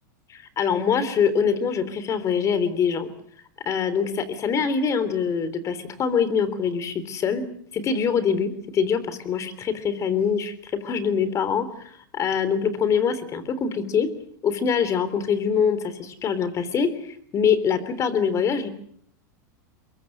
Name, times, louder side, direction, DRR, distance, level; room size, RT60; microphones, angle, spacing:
voice 1, 0.3-3.1 3.6-7.4 7.7-14.1 14.4-18.7, left 6 dB, 30° left, 14 dB, 3.5 m, -24 dB
24.0 x 22.5 x 7.9 m, 0.64 s
supercardioid pair, 130°, 10 cm